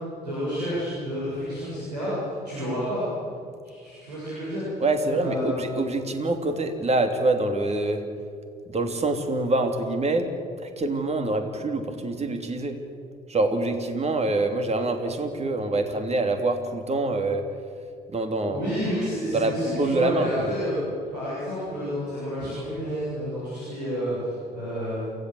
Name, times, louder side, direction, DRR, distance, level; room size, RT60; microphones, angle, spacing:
voice 1, 0.2-3.0 3.6-4.8 5.1-5.6 18.5-20.7 21.1-25.1, equal, 85° right, -9 dB, 7.6 m, -30 dB
voice 2, 4.8-8.0 8.7-10.3 10.6-12.8 13.3-17.5 18.1-18.7 19.3-20.5, right 2 dB, 30° right, 6 dB, 3.1 m, -25 dB
28.5 x 17.0 x 8.0 m, 2.3 s
figure-of-eight pair, 50°, 20 cm